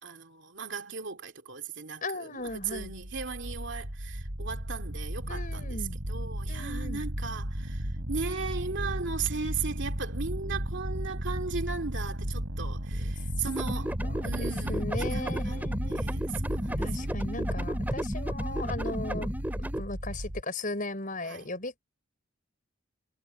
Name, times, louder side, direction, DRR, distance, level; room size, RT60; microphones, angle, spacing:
voice 1, 0.0-14.0 14.2-15.6 15.9-17.1 18.4-18.9 21.2-21.5, right 5 dB, 60° right, 2.8 m, -37 dB
voice 2, 2.0-2.9 5.3-6.0 6.5-7.0 13.0-13.1 14.0-16.1 16.8-21.8, left 2 dB, 40° left, 6.3 m, -37 dB
sound 1, 2.5-20.4, equal, 90° right, 4.9 m, -34 dB
sound 2, 13.5-19.8, equal, 10° right, 3.4 m, -34 dB
head